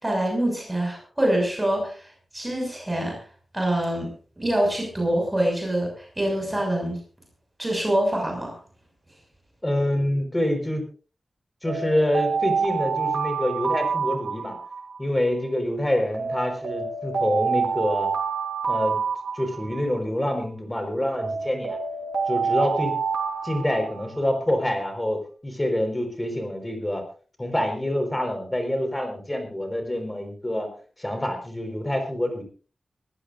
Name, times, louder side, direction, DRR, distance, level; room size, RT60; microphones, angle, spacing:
voice 1, 0.0-2.0 2.3-3.2 3.5-4.1 4.4-7.0 7.6-8.5, right 1 dB, 15° right, 0 dB, 6.3 m, -25 dB
voice 2, 9.6-10.9 11.6-14.6 15.0-18.1 18.7-19.0 19.3-21.8 22.3-22.9 23.4-27.0 27.4-30.7 31.0-32.4, left 1 dB, 15° left, 5 dB, 4.7 m, -26 dB
Alarm, 11.6-15.0 16.1-20.0 21.1-24.4, right 5 dB, 85° right, 4.3 m, -27 dB
23.5 x 15.5 x 2.6 m, 0.38 s
wide cardioid pair, 115°, 0 cm